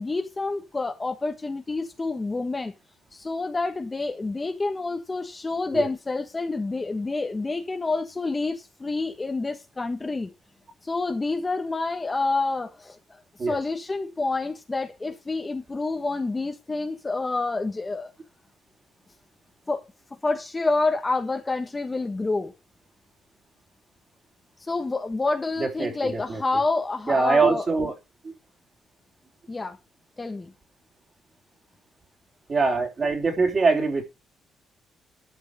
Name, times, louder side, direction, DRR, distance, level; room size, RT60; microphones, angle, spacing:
voice 1, 0.0-2.7 3.1-10.3 10.8-13.0 13.5-18.1 19.7-19.9 20.2-22.5 24.6-27.7 29.5-29.8 30.2-30.5, left 3 dB, 20° left, 1.3 m, -28 dB
voice 2, 25.6-26.4 27.1-27.9 28.2-28.3 32.5-34.0, right 4 dB, 30° right, 3.2 m, -23 dB
12.0 x 5.3 x 6.1 m
cardioid pair, 135°, 0 cm